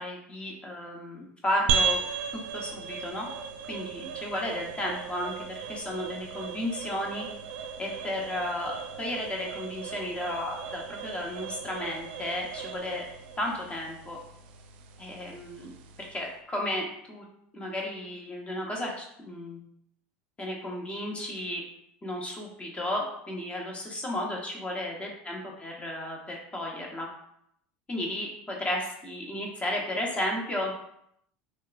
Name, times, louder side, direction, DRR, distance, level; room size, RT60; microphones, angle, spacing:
voice 1, 0.0-2.0 2.5-3.3 3.7-7.3 7.8-13.0 13.4-14.2 15.0-15.7 16.0-17.2 17.5-19.6 20.4-21.6 22.0-27.1 27.9-30.7, left 1 dB, 20° left, -1 dB, 1.0 m, -33 dB
sound 1, 1.7-16.3, right 6 dB, 75° right, 0.4 m, -36 dB
3.2 x 2.8 x 2.4 m, 0.72 s
supercardioid pair, 100°, 5 cm